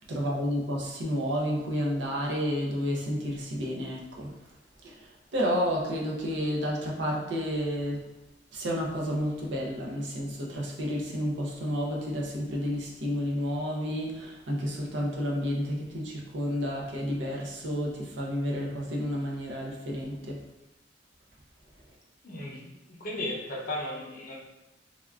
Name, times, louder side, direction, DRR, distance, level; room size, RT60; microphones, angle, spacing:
voice 1, 0.1-4.3 4.8-5.0 5.3-8.0 8.5-20.4, equal, 80° right, -2 dB, 0.6 m, -31 dB
voice 2, 22.2-24.4, left 1 dB, 50° left, -2 dB, 0.6 m, -35 dB
3.5 x 2.3 x 2.3 m, 1.0 s
head